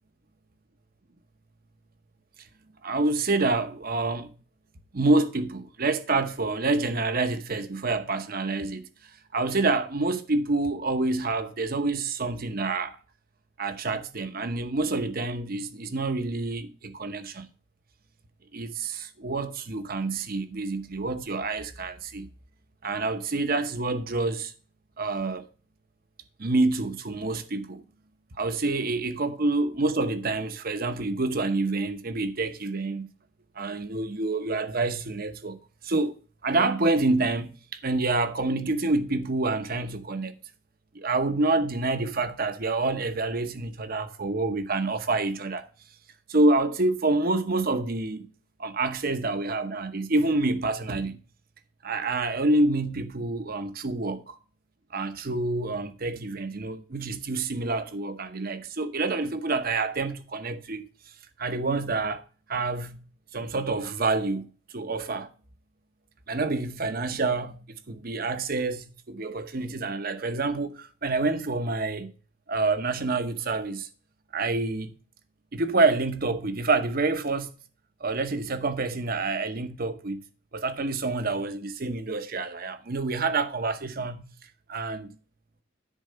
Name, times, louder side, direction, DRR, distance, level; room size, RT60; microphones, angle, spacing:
voice 1, 2.8-4.3 4.9-8.8 9.3-13.0 13.6-17.5 18.5-22.3 22.8-24.5 25.0-25.5 26.4-27.8 28.4-33.1 33.6-36.2 36.4-40.3 40.9-45.7 46.3-48.2 48.6-51.2 51.8-54.4 54.9-60.8 61.4-62.2 62.5-63.0 63.3-65.3 66.3-72.1 72.5-73.9 74.3-74.9 75.5-77.5 78.0-80.2 80.5-84.3 84.7-85.2, right 3 dB, 45° right, 0.9 m, -27 dB
10.0 x 4.1 x 6.6 m
head